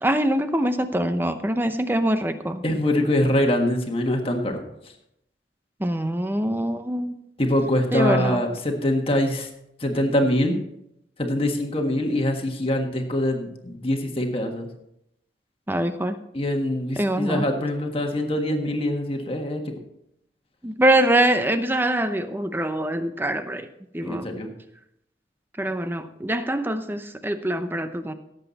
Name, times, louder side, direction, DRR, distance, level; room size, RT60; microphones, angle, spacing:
voice 1, 0.0-2.6 5.8-7.1 7.9-8.4 15.7-16.2 17.0-17.4 20.6-23.7 23.9-24.3 25.6-28.1, right 1 dB, 10° right, 9 dB, 0.7 m, -24 dB
voice 2, 2.6-4.6 7.4-9.5 9.8-10.5 11.2-14.7 16.3-19.6 24.0-24.5, left 1 dB, 30° left, 3 dB, 1.5 m, -24 dB
17.0 x 7.9 x 4.1 m, 0.80 s
head